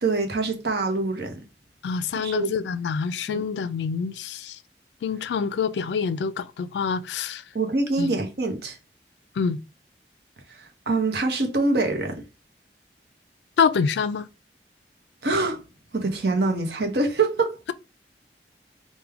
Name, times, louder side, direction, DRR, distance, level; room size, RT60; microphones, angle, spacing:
voice 1, 0.0-1.4 2.2-2.5 3.3-3.5 7.5-8.8 10.5-12.2 15.2-15.6 15.9-17.6, right 3 dB, 65° right, 0.7 m, -25 dB
voice 2, 1.8-4.6 5.0-7.4 8.0-8.2 9.4-9.6 13.6-14.3, left 6 dB, 75° left, 0.3 m, -26 dB
4.5 x 2.2 x 3.4 m
head